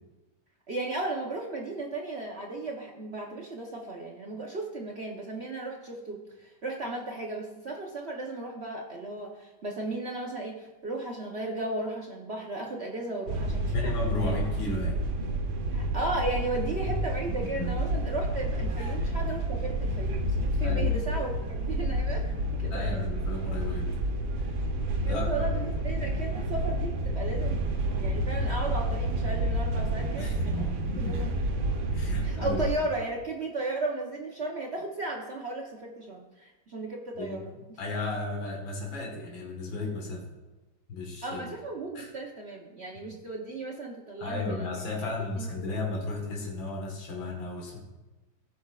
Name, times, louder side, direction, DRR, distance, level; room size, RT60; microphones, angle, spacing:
voice 1, 0.7-13.9 15.7-23.0 25.0-27.6 28.0-31.3 32.2-37.4 41.2-44.7 45.4-45.5, right 2 dB, 50° right, -1 dB, 0.8 m, -35 dB
sound 1, 13.3-32.7, right 1 dB, 85° right, 1.7 m, -29 dB
voice 2, 13.6-15.0 16.8-16.9 17.6-17.7 18.8-18.9 20.6-20.8 22.7-23.9 25.0-25.7 30.2-31.3 31.9-32.6 37.2-37.4 37.8-40.2 40.9-41.4 41.9-42.1 44.2-47.8, left 2 dB, 80° left, -1 dB, 2.3 m, -34 dB
15.0 x 6.0 x 2.4 m, 1.1 s
omnidirectional pair, 2.1 m